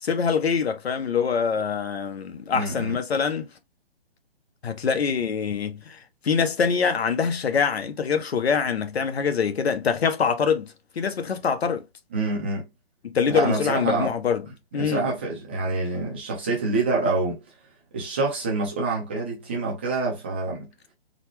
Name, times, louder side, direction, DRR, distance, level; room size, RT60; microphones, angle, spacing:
voice 1, 0.0-3.5 4.6-11.9 13.0-14.4 14.7-15.1, left 6 dB, 75° left, 0.9 m, -24 dB
voice 2, 2.5-3.0 12.1-12.7 13.3-14.1 14.7-17.4 17.9-20.7, right 3 dB, 10° right, 0.5 m, -26 dB
4.0 x 2.2 x 3.0 m
hypercardioid pair, 165°, 31 cm